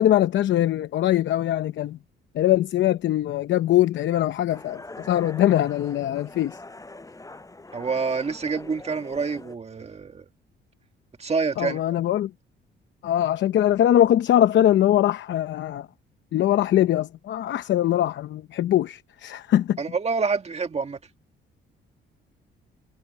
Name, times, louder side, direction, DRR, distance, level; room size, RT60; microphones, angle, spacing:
voice 1, 0.0-2.0 2.3-6.6 11.6-12.3 13.0-15.9 16.3-19.8, left 12 dB, 70° left, 0.8 m, -22 dB
sound 1, 4.5-9.6, left 2 dB, 15° left, 7.8 m, -43 dB
voice 2, 7.7-10.3 11.2-11.8 19.8-21.0, right 4 dB, 30° right, 2.0 m, -27 dB
cardioid pair, 90°, 20 cm